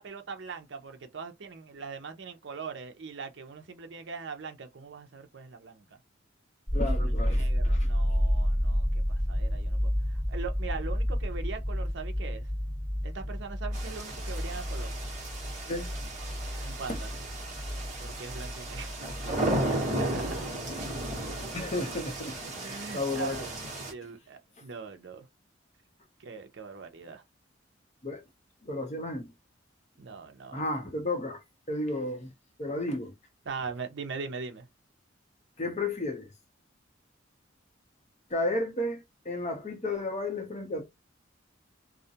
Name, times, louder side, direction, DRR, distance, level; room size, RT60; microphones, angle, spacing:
voice 1, 0.0-5.8 6.9-7.0 7.3-12.7 13.0-15.0 16.6-17.1 18.0-18.9 19.6-20.5 22.4-23.5 23.9-25.3 26.2-27.2 30.0-30.8 33.5-34.7, right 5 dB, 60° right, 0.6 m, -41 dB
voice 2, 6.7-7.9 15.7-15.9 16.9-17.0 21.5-23.5 28.0-28.2 28.6-29.3 30.5-32.3 32.6-33.1 35.6-36.3 38.3-40.8, left 2 dB, 35° left, 0.7 m, -33 dB
sound 1, 6.7-20.5 20.8-21.7, equal, 10° right, 1.5 m, -30 dB
sound 2, 13.7-23.9, right 1 dB, 35° right, 1.0 m, -35 dB
2.3 x 2.1 x 2.8 m
head